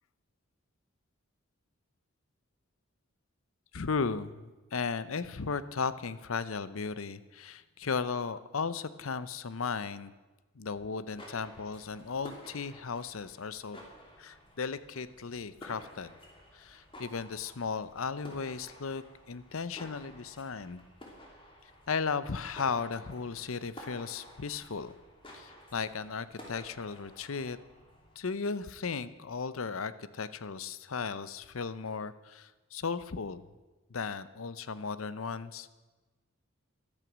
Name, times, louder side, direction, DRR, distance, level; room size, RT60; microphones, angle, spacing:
voice 1, 3.7-10.1 10.6-13.8 14.2-16.1 16.5-20.8 21.9-24.9 25.3-27.6 28.2-33.4 33.9-35.7, left 5 dB, 80° left, 15 dB, 0.7 m, -36 dB
sound 1, 10.9-28.3, equal, 25° left, 2.8 m, -52 dB
14.0 x 12.5 x 6.3 m, 1.2 s
head